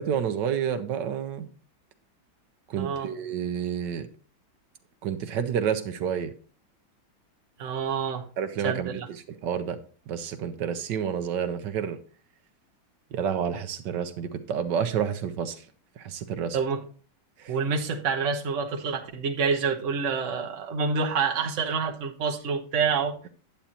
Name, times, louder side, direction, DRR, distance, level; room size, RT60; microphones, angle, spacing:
voice 1, 0.1-1.5 2.7-4.1 5.0-6.3 8.4-9.8 10.1-12.0 13.1-15.6 16.0-16.6 17.4-17.5, right 8 dB, 65° right, 9 dB, 1.3 m, -29 dB
voice 2, 2.8-3.1 7.6-8.3 8.6-8.9 16.5-16.8 17.5-23.3, right 5 dB, 45° right, 1 dB, 1.3 m, -27 dB
10.0 x 8.0 x 2.9 m, 0.40 s
omnidirectional pair, 2.3 m